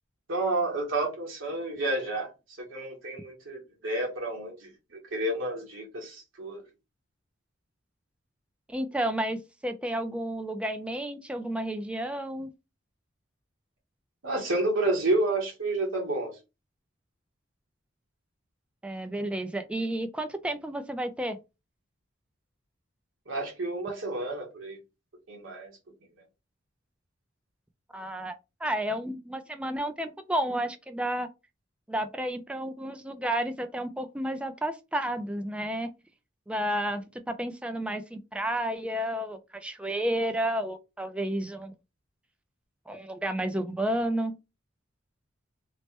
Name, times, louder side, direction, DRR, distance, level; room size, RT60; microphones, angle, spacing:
voice 1, 0.3-2.3 2.7-4.7 5.1-6.6 14.2-16.4 23.3-24.8 25.3-25.7, right 2 dB, 90° right, 1.1 m, -30 dB
voice 2, 8.7-12.5 18.8-21.4 27.9-28.3 28.6-31.3 31.9-35.9 36.5-41.7 42.9-44.3, right 1 dB, 5° right, 0.3 m, -31 dB
3.2 x 2.1 x 2.9 m
head